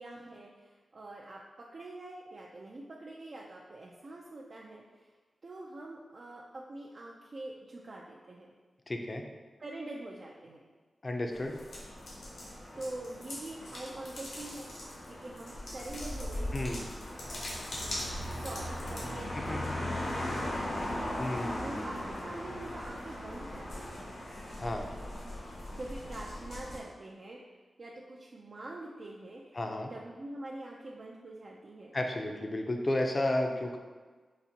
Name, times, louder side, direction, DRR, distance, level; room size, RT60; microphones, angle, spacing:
voice 1, 0.0-5.1 5.4-8.5 9.6-10.7 12.8-14.7 15.1-16.9 17.5-20.4 21.6-24.3 25.7-27.4 27.8-29.6 29.9-31.9, right 2 dB, 55° right, -3 dB, 0.3 m, -45 dB
voice 2, 8.9-9.2 11.0-11.5 16.5-16.8 19.5-19.6 20.2-20.3 21.2-21.9 24.6-24.9 29.5-29.9 31.9-33.8, left 1 dB, 35° left, 3 dB, 0.4 m, -32 dB
sound 1, 11.3-26.8, left 1 dB, 85° left, 0.9 m, -38 dB
4.0 x 2.5 x 2.7 m, 1.4 s
wide cardioid pair, 80°, 0 cm